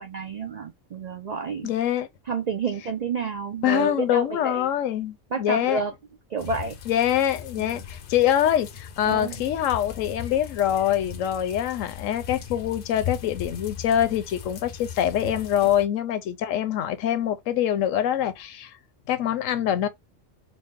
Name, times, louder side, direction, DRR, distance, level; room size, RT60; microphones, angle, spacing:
voice 1, 0.0-1.7 2.3-4.7 5.3-5.9 6.3-6.8 7.6-7.8 9.0-9.4, right 5 dB, 80° right, 0.3 m, -30 dB
voice 2, 1.6-2.1 3.6-5.8 6.9-18.7 19.1-19.9, left 10 dB, 80° left, 1.0 m, -24 dB
sound 1, 6.4-15.8, left 8 dB, 55° left, 0.6 m, -38 dB
4.0 x 2.0 x 3.6 m
omnidirectional pair, 1.3 m